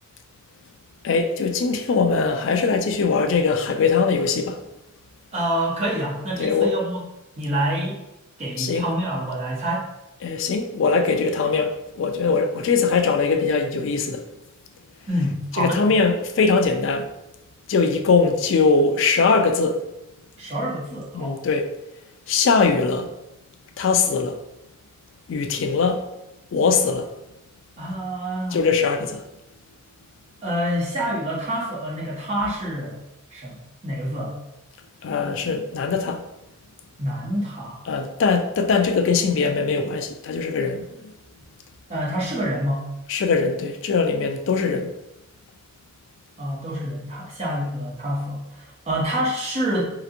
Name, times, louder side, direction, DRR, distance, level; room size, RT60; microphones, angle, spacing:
voice 1, 1.0-4.6 6.4-6.7 8.6-8.9 10.2-14.2 15.5-17.1 17.7-19.9 21.1-21.7 22.3-23.1 23.8-24.4 25.3-26.1 26.5-27.2 28.5-29.3 35.0-36.3 37.9-41.1 43.1-44.9, left 4 dB, 60° left, 0.3 m, -21 dB
voice 2, 5.3-7.0 7.4-8.0 8.4-9.9 15.1-15.8 20.4-21.4 27.8-28.6 30.4-33.0 33.3-34.4 37.0-37.8 41.9-42.9 46.4-49.9, equal, 30° right, 0.9 m, -27 dB
3.3 x 2.8 x 2.4 m
head